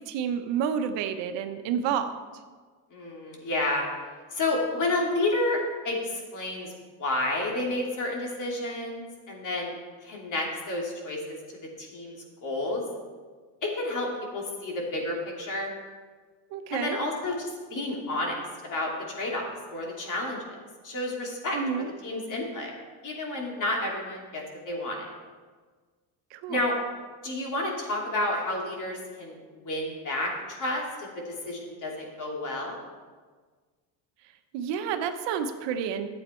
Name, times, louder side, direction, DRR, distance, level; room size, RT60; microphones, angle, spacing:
voice 1, 0.1-2.1 16.5-17.0 21.5-21.9 26.3-26.6 34.5-36.1, right 7 dB, 70° right, 7 dB, 1.0 m, -29 dB
voice 2, 2.9-3.8 4.3-5.6 5.8-6.7 7.0-11.4 11.8-12.2 12.4-12.8 13.6-15.7 16.7-18.3 18.7-20.4 20.8-21.6 22.0-22.7 23.0-25.1 26.5-26.8 27.2-29.4 29.6-32.8, left 2 dB, 40° left, -1 dB, 2.9 m, -30 dB
12.0 x 8.1 x 4.5 m, 1.5 s
cardioid pair, 110°, 45 cm